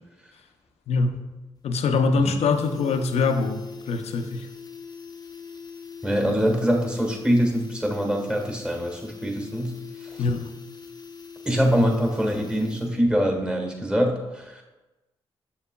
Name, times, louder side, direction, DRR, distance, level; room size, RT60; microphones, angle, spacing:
voice 1, 0.9-1.3 1.6-4.5 10.2-10.5, left 4 dB, 75° left, 6 dB, 0.6 m, -24 dB
sound 1, 1.6-1.7 2.0-2.1 2.3-13.2 13.4-13.5, left 5 dB, 35° left, 0.8 m, -42 dB
voice 2, 6.0-9.7 11.4-14.6, equal, 5° right, 2 dB, 1.6 m, -24 dB
7.0 x 6.7 x 2.2 m, 1.1 s
supercardioid pair, 50°, 11 cm